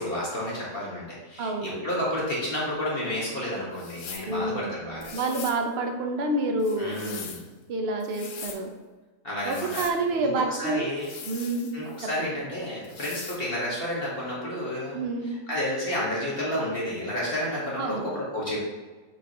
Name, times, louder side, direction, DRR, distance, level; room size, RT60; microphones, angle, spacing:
voice 1, 0.0-5.1 6.8-7.4 9.2-9.8 10.1-11.1 11.7-15.0 15.5-18.6, left 1 dB, 40° left, -6 dB, 1.7 m, -31 dB
voice 2, 1.4-1.9 4.3-4.7 5.1-7.0 7.7-8.7 9.4-10.9 11.2-11.7 12.0-12.4 14.9-15.3 17.8-18.2, right 2 dB, 50° right, 4 dB, 0.9 m, -28 dB
sound 1, 3.7-4.3 5.0-5.6 6.6-7.5 8.0-8.6 9.4-10.0 11.0-12.0 12.8-13.4, left 6 dB, 60° left, 0.5 m, -41 dB
8.2 x 4.7 x 3.0 m, 1.3 s
omnidirectional pair, 1.6 m